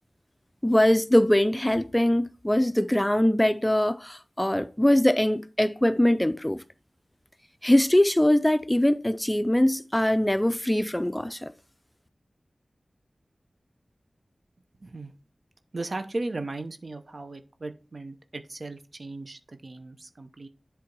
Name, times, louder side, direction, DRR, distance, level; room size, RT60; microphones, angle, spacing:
voice 1, 0.6-6.6 7.6-11.5, left 1 dB, 10° left, 0.5 m, -22 dB
voice 2, 15.7-20.5, right 2 dB, 65° right, 0.8 m, -36 dB
7.7 x 3.4 x 5.3 m
cardioid pair, 40°, 0 cm